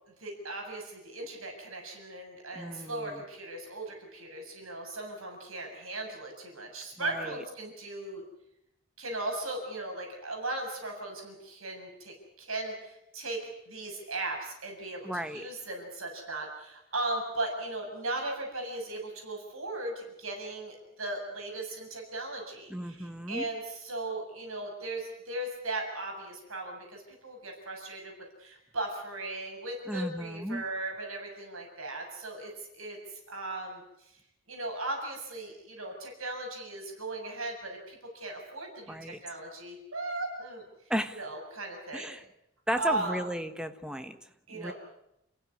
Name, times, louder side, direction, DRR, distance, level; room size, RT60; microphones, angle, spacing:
voice 1, 0.2-8.2 9.0-28.1 28.4-33.0 33.3-33.8 34.5-40.6 41.1-42.1 42.8-43.2 44.5-44.7, right 2 dB, 70° right, 2 dB, 7.2 m, -37 dB
voice 2, 2.5-3.2 7.0-7.4 15.0-15.5 22.7-23.5 29.9-30.6 38.9-39.2 40.9-41.2 41.9-42.2 42.7-44.2 44.5-44.7, equal, 5° right, 8 dB, 1.2 m, -34 dB
29.0 x 16.0 x 9.8 m, 0.84 s
head